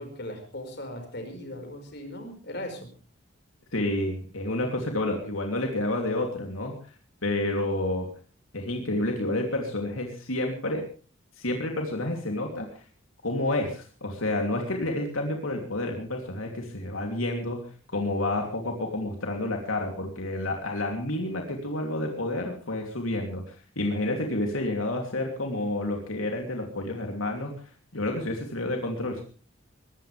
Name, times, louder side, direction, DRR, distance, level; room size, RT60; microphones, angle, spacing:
voice 1, 0.0-2.8, left 1 dB, 55° left, 5 dB, 5.1 m, -38 dB
voice 2, 3.7-6.7 7.2-8.1 8.5-10.9 11.4-12.7 13.2-17.6 17.9-27.5 27.9-29.2, left 1 dB, 80° left, 2 dB, 3.0 m, -29 dB
22.0 x 16.0 x 3.4 m, 0.37 s
head